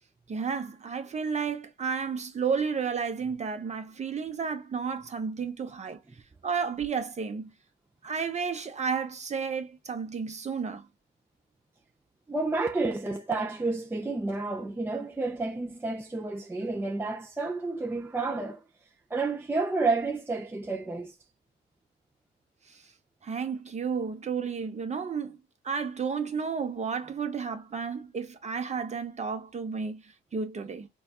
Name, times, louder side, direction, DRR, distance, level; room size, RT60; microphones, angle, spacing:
voice 1, 0.3-6.0 6.4-7.5 8.0-10.9 22.7-22.8 23.2-25.4 25.6-30.9, right 6 dB, 35° right, 0.8 m, -32 dB
voice 2, 12.3-18.6 19.1-21.2, right 3 dB, 10° right, 0.4 m, -30 dB
4.0 x 2.3 x 2.3 m
cardioid pair, 90°, 20 cm